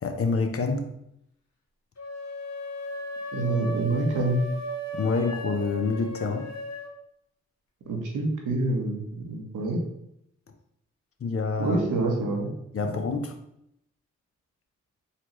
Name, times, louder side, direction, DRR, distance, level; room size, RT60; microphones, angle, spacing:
voice 1, 0.0-0.9 4.9-6.5 11.2-11.8 12.7-13.4, left 4 dB, 45° left, 5 dB, 0.7 m, -27 dB
sound 1, 2.0-6.9, left 1 dB, 60° left, 1.3 m, -36 dB
voice 2, 3.3-4.4 7.9-9.8 11.6-12.5, right 2 dB, 75° right, 0 dB, 1.1 m, -27 dB
4.1 x 3.1 x 3.0 m, 0.77 s
supercardioid pair, 40°, 31 cm